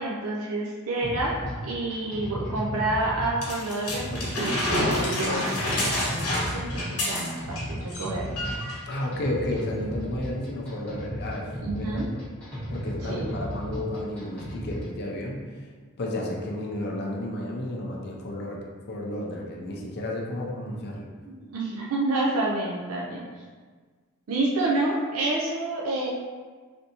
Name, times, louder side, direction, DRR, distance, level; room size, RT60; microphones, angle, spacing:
voice 1, 0.0-1.3 1.6-8.4 11.6-12.1 13.1-13.3 21.2-23.3 24.3-26.1, right 2 dB, 70° right, -3 dB, 0.4 m, -29 dB
sound 1, 1.0-14.9, equal, 5° left, 0.9 m, -35 dB
sound 2, 3.4-7.6 7.9-8.1 8.4-8.8 9.5-9.6, left 1 dB, 85° left, 1.0 m, -28 dB
voice 2, 8.9-12.2 12.7-15.7 16.0-21.1, left 1 dB, 50° left, -2 dB, 0.5 m, -32 dB
3.3 x 2.7 x 2.8 m, 1.5 s
head